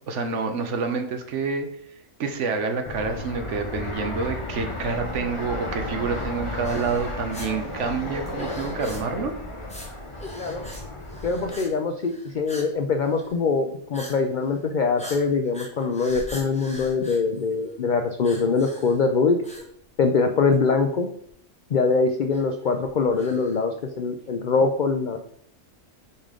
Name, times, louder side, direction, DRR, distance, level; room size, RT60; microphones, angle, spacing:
voice 1, 0.1-1.7 2.2-9.3, right 4 dB, 65° right, 6 dB, 1.1 m, -28 dB
Fixed-wing aircraft airplane, 2.8-11.5, left 1 dB, 30° left, 0.6 m, -33 dB
sound 1, 6.6-7.5 8.3-9.2 9.6-9.9 10.1-10.8 11.1-11.7 12.0-12.7 13.0-13.3 13.9-14.2 14.5-14.6 15.0-17.8 18.2-19.0 19.4-20.2 20.5-20.6 21.3-21.4 22.3-23.6, equal, 5° left, 1.1 m, -42 dB
voice 2, 10.3-10.7 11.2-19.4 20.0-21.1 21.7-25.2, left 4 dB, 75° left, 5 dB, 0.4 m, -23 dB
5.4 x 5.0 x 3.7 m, 0.65 s
omnidirectional pair, 1.4 m